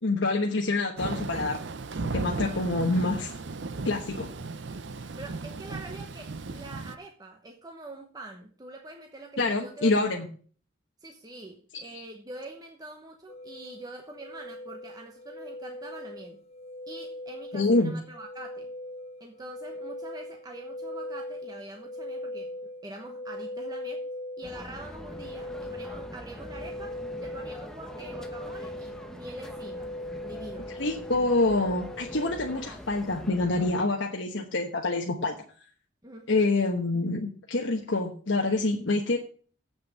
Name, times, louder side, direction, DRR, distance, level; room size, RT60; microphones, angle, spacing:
voice 1, 0.0-1.6 2.0-3.3 3.8-4.3 9.4-10.3 17.5-17.9 30.8-35.3 36.3-39.2, left 2 dB, 75° left, 1 dB, 1.2 m, -26 dB
Thunder / Rain, 1.0-7.0, right 3 dB, 65° right, 0.6 m, -35 dB
voice 2, 5.2-10.2 11.0-16.4 16.9-18.7 19.2-22.5 22.8-24.1 24.4-29.9 30.2-30.8 36.0-36.3, right 2 dB, 20° right, 3 dB, 1.0 m, -44 dB
sound 1, 13.3-32.7, left 1 dB, 30° left, 0.6 m, -40 dB
sound 2, 24.4-33.7, equal, 5° left, 1.0 m, -44 dB
8.1 x 6.4 x 8.2 m, 0.44 s
head